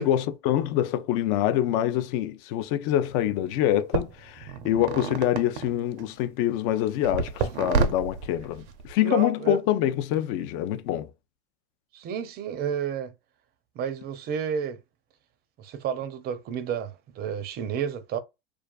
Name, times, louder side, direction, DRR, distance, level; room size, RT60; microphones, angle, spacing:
voice 1, 0.0-11.1, left 12 dB, 50° left, 0.5 m, -25 dB
sound 1, 3.1-3.2 3.9-6.2 7.0-8.9, right 5 dB, 80° right, 0.5 m, -29 dB
voice 2, 9.0-9.6 11.9-13.1 13.8-14.8 15.6-18.2, right 8 dB, 30° right, 0.4 m, -31 dB
2.4 x 2.3 x 2.3 m
hypercardioid pair, 100°, 33 cm